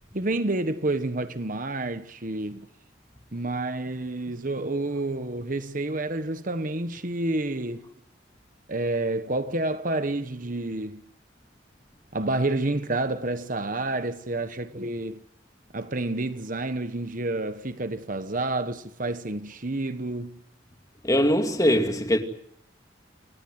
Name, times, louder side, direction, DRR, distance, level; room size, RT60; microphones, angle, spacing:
voice 1, 0.1-2.7 3.3-7.9 8.7-11.1 12.1-15.2 15.7-20.4, right 2 dB, 45° right, 1.2 m, -29 dB
voice 2, 21.0-22.2, equal, 20° left, 2.5 m, -21 dB
29.0 x 18.5 x 7.9 m
head